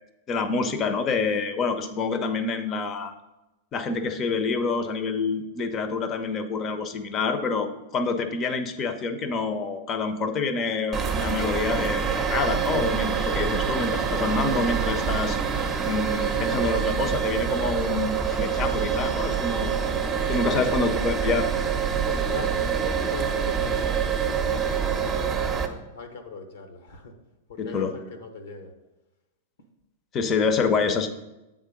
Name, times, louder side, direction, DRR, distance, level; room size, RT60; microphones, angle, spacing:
voice 1, 0.3-3.1 3.7-7.7 7.9-15.4 15.8-19.9 20.3-21.5 27.6-27.9 30.1-31.1, left 4 dB, 35° left, 9 dB, 0.7 m, -27 dB
sound 1, 10.9-25.7, right 6 dB, 25° right, 0.8 m, -26 dB
voice 2, 19.4-19.9 20.7-20.9 22.1-25.3 25.9-27.1 27.5-28.7, left 4 dB, 75° left, 7 dB, 0.9 m, -40 dB
7.9 x 3.7 x 5.2 m, 1.0 s
hypercardioid pair, 105°, 0 cm